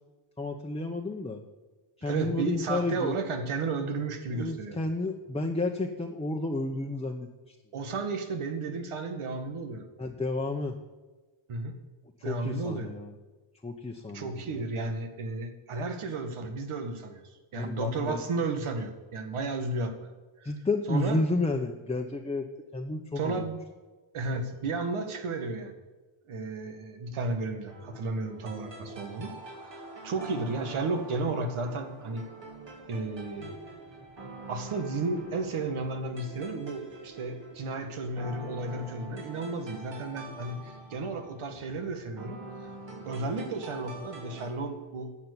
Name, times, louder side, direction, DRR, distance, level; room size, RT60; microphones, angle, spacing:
voice 1, 0.4-1.4 2.0-3.2 4.3-7.5 10.0-10.7 12.2-13.1 13.6-14.6 17.5-18.2 20.4-23.3, left 2 dB, 10° left, 2 dB, 1.0 m, -31 dB
voice 2, 2.1-4.8 7.7-9.8 11.5-11.8 12.2-12.9 14.1-17.2 17.5-20.1 20.4-20.5 20.9-21.2 23.2-23.6 24.1-25.7 26.3-29.3 29.7-32.3 32.9-33.6 34.5-42.4 43.0-45.2, right 3 dB, 85° right, 7 dB, 2.0 m, -33 dB
sound 1, 27.6-44.5, right 2 dB, 60° right, 4.4 m, -45 dB
11.5 x 7.5 x 9.8 m, 1.3 s
wide cardioid pair, 115°, 49 cm